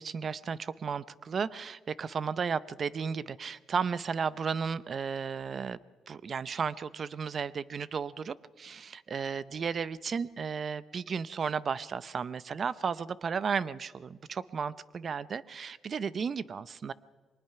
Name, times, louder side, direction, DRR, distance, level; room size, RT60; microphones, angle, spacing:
voice 1, 0.0-5.8 6.1-16.9, right 6 dB, 45° right, 18 dB, 0.6 m, -34 dB
23.0 x 19.5 x 5.8 m, 1.4 s
cardioid pair, 90°, 0 cm